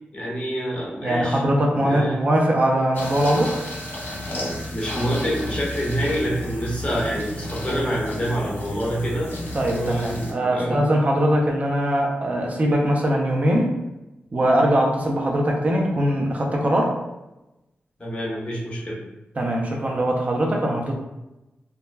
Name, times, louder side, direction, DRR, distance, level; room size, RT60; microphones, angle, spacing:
voice 1, 0.1-1.4 1.7-2.2 4.7-9.3 9.7-10.8 18.0-19.0, equal, 25° left, -5 dB, 0.9 m, -26 dB
voice 2, 1.0-3.5 9.5-13.7 14.3-16.9 19.4-20.9, right 1 dB, 40° right, 0 dB, 0.5 m, -21 dB
sound 1, 2.9-10.3, left 1 dB, 55° left, 0.8 m, -32 dB
2.3 x 2.1 x 3.2 m, 0.97 s
wide cardioid pair, 110°, 4 cm